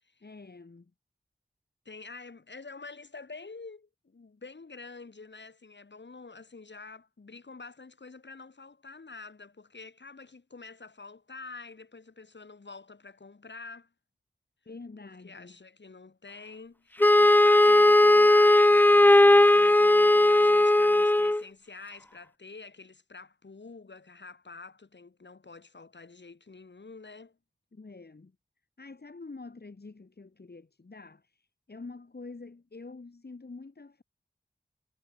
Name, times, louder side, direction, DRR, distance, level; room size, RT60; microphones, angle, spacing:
voice 1, 0.2-0.9 14.6-15.6 27.7-28.3 28.8-34.0, left 3 dB, 65° left, 3.0 m, -46 dB
voice 2, 1.9-13.9 15.0-27.4, left 4 dB, 85° left, 5.8 m, -47 dB
Wind instrument woodwind instrument, 17.0-21.4, left 1 dB, 10° left, 0.4 m, -18 dB
wide cardioid pair, 55°, 18 cm